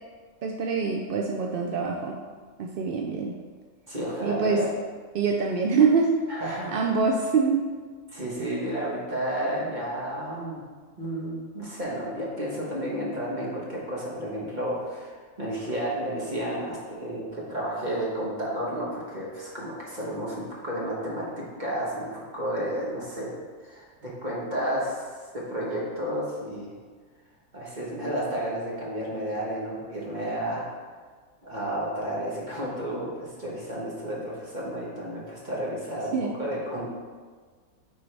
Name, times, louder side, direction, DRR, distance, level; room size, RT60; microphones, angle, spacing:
voice 1, 0.4-2.2 2.6-3.3 4.2-4.6 5.1-6.2 6.7-7.7 36.1-36.3, right 5 dB, 70° right, 1 dB, 0.5 m, -24 dB
voice 2, 3.9-4.7 6.3-6.7 8.1-10.6 11.0-23.3 23.6-25.2 25.5-26.7 27.5-30.7 31.4-36.9, right 1 dB, 35° right, -5 dB, 1.3 m, -32 dB
9.1 x 4.0 x 3.3 m, 1.5 s
omnidirectional pair, 1.5 m